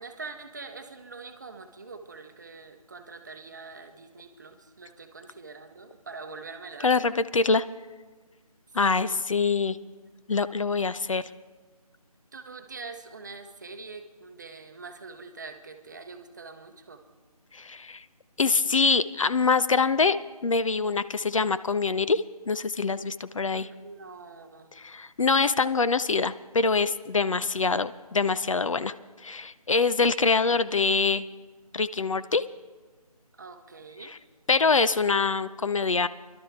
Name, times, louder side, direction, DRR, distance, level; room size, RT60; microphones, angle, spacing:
voice 1, 0.0-7.1 8.9-9.2 12.3-17.0 23.5-24.7 33.4-34.1, right 4 dB, 30° right, 6 dB, 0.8 m, -44 dB
voice 2, 6.8-7.6 8.7-9.8 10.3-11.2 17.5-18.0 18.4-20.2 20.4-23.7 24.8-28.9 29.2-31.3 31.7-32.4 34.5-36.1, left 4 dB, 55° left, 14 dB, 0.5 m, -24 dB
22.0 x 12.0 x 3.6 m, 1.3 s
figure-of-eight pair, 165°, 20 cm